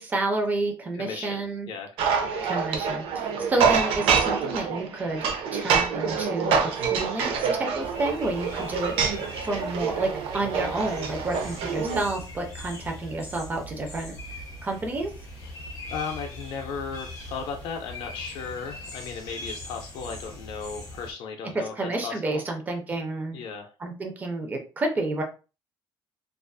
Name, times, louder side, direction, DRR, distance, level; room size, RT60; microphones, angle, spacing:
voice 1, 0.0-1.7 2.4-9.0 9.4-14.1 14.6-15.1 21.5-23.4 23.8-25.2, right 2 dB, 20° right, 3 dB, 0.4 m, -30 dB
voice 2, 0.9-2.3 15.4-21.7 22.0-22.4 23.3-23.7, left 5 dB, 65° left, 2 dB, 0.4 m, -36 dB
sound 1, 2.0-12.0, right 6 dB, 85° right, 0.4 m, -26 dB
sound 2, 7.8-21.1, left 1 dB, 35° left, 1.0 m, -41 dB
2.4 x 2.3 x 2.3 m, 0.33 s
cardioid pair, 180°, 9 cm